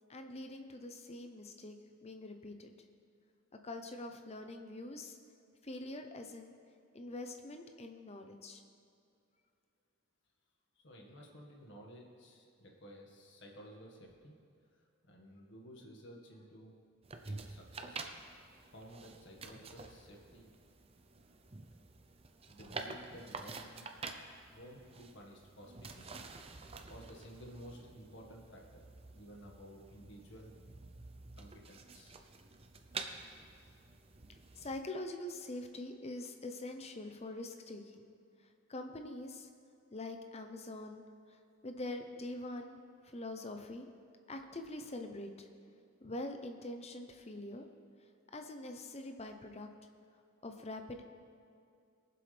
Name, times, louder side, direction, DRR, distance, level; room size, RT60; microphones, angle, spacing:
voice 1, 0.1-2.7 3.6-5.2 5.6-6.5 6.9-8.6 34.6-38.1 38.7-39.5 39.9-41.4 41.6-42.8 43.0-43.9 44.3-45.5 46.0-47.7 48.3-49.7 50.4-51.0, left 2 dB, 30° left, 5 dB, 0.8 m, -44 dB
voice 2, 10.8-14.3 15.0-16.8 17.3-20.5 22.5-23.9 24.5-26.5 26.9-28.8 29.1-30.5 31.3-32.2, equal, 60° left, 0 dB, 1.8 m, -54 dB
sound 1, 17.0-34.8, right 4 dB, 30° right, 0.7 m, -49 dB
22.0 x 7.7 x 3.5 m, 2.5 s
head